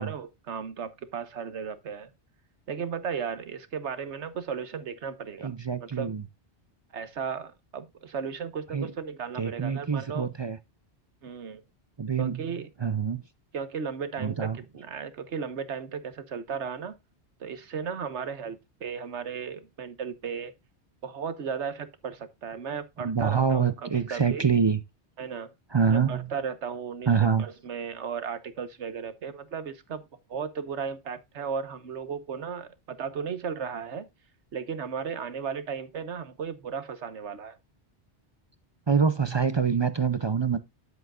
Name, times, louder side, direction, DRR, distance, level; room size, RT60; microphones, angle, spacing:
voice 1, 0.0-2.1 2.7-5.5 5.8-6.1 6.9-10.3 11.2-11.6 12.2-12.7 13.5-17.0 17.4-20.5 21.0-24.5 25.2-25.5 25.9-27.1 27.4-30.0 30.3-34.1 34.5-37.6, right 6 dB, 90° right, 1.4 m, -35 dB
voice 2, 5.4-6.2 8.7-8.9 9.4-10.6 12.0-12.5 12.8-13.2 14.2-14.6 23.0-24.8 25.7-26.3 27.1-27.5 38.9-40.6, right 6 dB, 35° right, 0.4 m, -25 dB
10.0 x 7.8 x 2.4 m
omnidirectional pair, 1.1 m